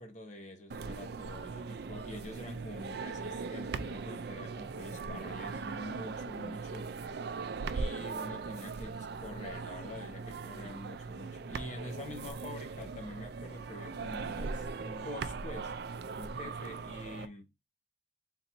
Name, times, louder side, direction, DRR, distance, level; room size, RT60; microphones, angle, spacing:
voice 1, 0.0-6.9 7.7-15.7 16.1-17.5, left 1 dB, 45° left, 1.1 m, -46 dB
sound 1, 0.7-17.3, right 4 dB, 65° right, 0.4 m, -40 dB
3.9 x 2.6 x 4.3 m
head